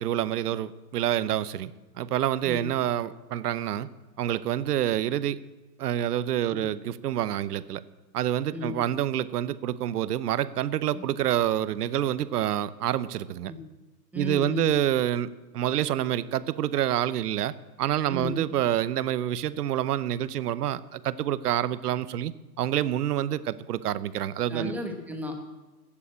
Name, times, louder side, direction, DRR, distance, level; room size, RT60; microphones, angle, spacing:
voice 1, 0.0-1.7 2.0-3.9 4.2-5.4 5.8-7.8 8.1-13.5 14.1-24.7, right 11 dB, 70° right, 17 dB, 0.9 m, -27 dB
voice 2, 14.1-14.7 18.1-18.3 24.5-25.5, left 2 dB, 5° right, 3 dB, 1.2 m, -34 dB
15.5 x 7.0 x 8.6 m, 1.2 s
hypercardioid pair, 155°, 48 cm